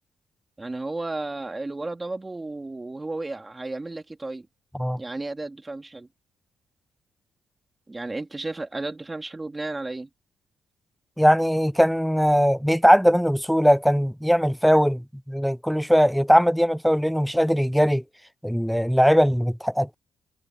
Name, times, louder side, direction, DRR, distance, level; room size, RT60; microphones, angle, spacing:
voice 1, 0.6-4.5 5.0-6.1 7.9-10.1, right 2 dB, 20° right, 3.0 m, -33 dB
voice 2, 11.2-18.0 18.4-19.9, equal, ahead, 0.4 m, -20 dB
cardioid pair, 90°, 0 cm